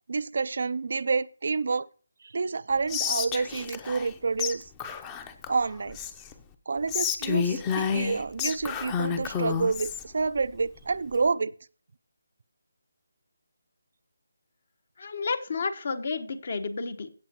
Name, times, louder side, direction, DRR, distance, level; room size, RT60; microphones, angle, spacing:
voice 1, 0.1-1.9 2.2-4.7 5.5-6.0 6.7-11.5, right 4 dB, 60° right, 17 dB, 0.4 m, -28 dB
Whispering, 2.9-4.1 4.4-4.5 4.8-6.3 6.9-10.0, left 7 dB, 15° left, 0.7 m, -30 dB
voice 2, 15.0-17.1, left 4 dB, 50° left, 11 dB, 1.2 m, -31 dB
16.0 x 7.4 x 3.0 m, 0.41 s
figure-of-eight pair, 160°, 0 cm